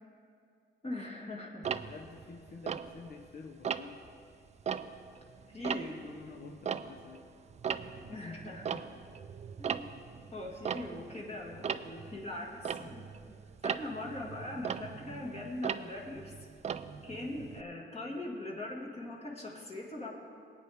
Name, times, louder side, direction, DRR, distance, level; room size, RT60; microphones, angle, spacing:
voice 1, 0.8-1.7 5.5-6.0 7.7-9.0 9.6-9.9 10.3-13.1 13.6-16.3 17.0-20.1, left 2 dB, 30° left, -2 dB, 1.8 m, -41 dB
Tick-tock, 1.6-3.3 3.6-4.1 4.5-7.2 7.5-17.6, right 7 dB, 35° right, 0.4 m, -38 dB
voice 2, 1.7-4.0 5.8-7.3, left 5 dB, 50° left, 3 dB, 0.8 m, -49 dB
18.5 x 9.1 x 3.5 m, 2.4 s
cardioid pair, 90°, 20 cm